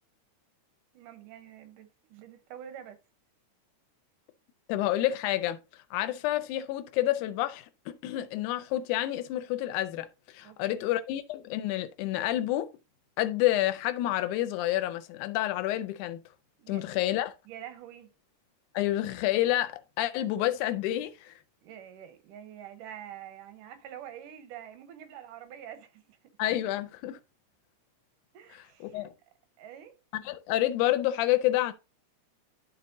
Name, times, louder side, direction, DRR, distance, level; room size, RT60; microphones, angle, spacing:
voice 1, 0.9-3.0 10.4-10.9 16.6-17.0 17.5-18.1 21.6-26.2 28.3-29.1 29.6-30.0, right 10 dB, 80° right, 2.4 m, -46 dB
voice 2, 4.7-5.6 5.9-10.1 10.3-12.7 13.2-16.2 16.7-17.3 18.7-21.3 26.4-27.2 28.8-29.1 30.1-31.7, left 14 dB, 80° left, 2.1 m, -29 dB
11.5 x 4.1 x 2.6 m
omnidirectional pair, 3.7 m